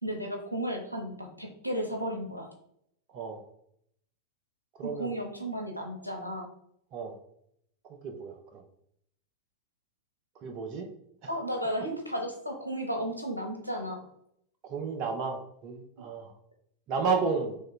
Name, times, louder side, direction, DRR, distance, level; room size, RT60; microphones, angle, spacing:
voice 1, 0.0-2.5 5.0-6.5 11.3-14.0, equal, 90° right, 2 dB, 0.7 m, -34 dB
voice 2, 4.8-5.1 6.9-7.2 7.9-8.6 10.4-10.9 14.6-16.3 16.9-17.6, right 5 dB, 40° right, 4 dB, 0.5 m, -32 dB
3.2 x 3.1 x 3.7 m, 0.70 s
figure-of-eight pair, 90°, 0 cm